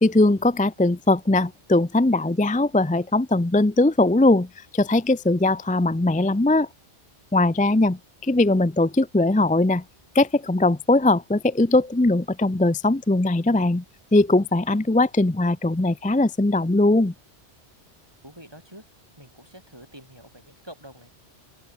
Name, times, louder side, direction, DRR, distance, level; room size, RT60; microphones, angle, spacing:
voice 1, 0.0-4.5 4.7-6.7 7.3-9.8 10.1-13.8 14.1-17.1, left 2 dB, 10° left, 0.5 m, -20 dB
voice 2, 18.2-18.8 19.2-21.1, equal, 20° right, 7.2 m, -46 dB
open air
omnidirectional pair, 1.1 m